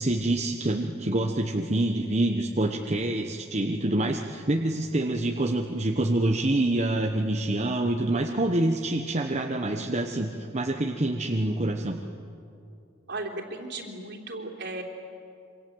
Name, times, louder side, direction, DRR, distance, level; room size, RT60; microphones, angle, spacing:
voice 1, 0.0-12.0, right 1 dB, 30° right, 2 dB, 1.1 m, -26 dB
voice 2, 13.1-14.8, right 2 dB, 55° right, 1 dB, 3.5 m, -36 dB
27.5 x 25.5 x 7.9 m, 2.6 s
head